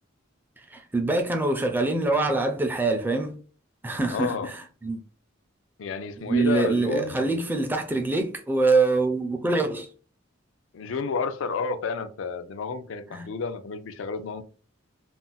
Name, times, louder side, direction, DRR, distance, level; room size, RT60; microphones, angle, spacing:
voice 1, 0.7-3.3 3.8-4.3 4.8-5.0 6.3-9.9 13.1-13.3, right 3 dB, 10° right, 0.4 m, -24 dB
voice 2, 4.1-4.5 5.8-7.4 10.7-14.4, left 5 dB, 80° left, 0.4 m, -31 dB
2.4 x 2.0 x 3.8 m
head